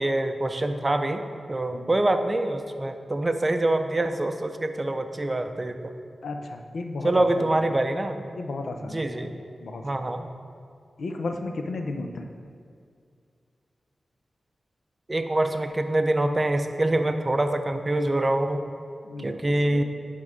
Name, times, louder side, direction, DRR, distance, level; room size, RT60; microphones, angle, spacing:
voice 1, 0.0-5.9 7.0-8.2 8.9-9.3 9.8-10.3 15.1-18.6 19.2-19.8, right 1 dB, 25° right, 7 dB, 0.5 m, -25 dB
voice 2, 6.2-7.4 8.4-9.3 9.6-10.1 11.0-12.3 19.0-19.8, left 2 dB, 80° left, 4 dB, 0.6 m, -34 dB
10.5 x 3.7 x 5.0 m, 2.3 s
wide cardioid pair, 85°, 0 cm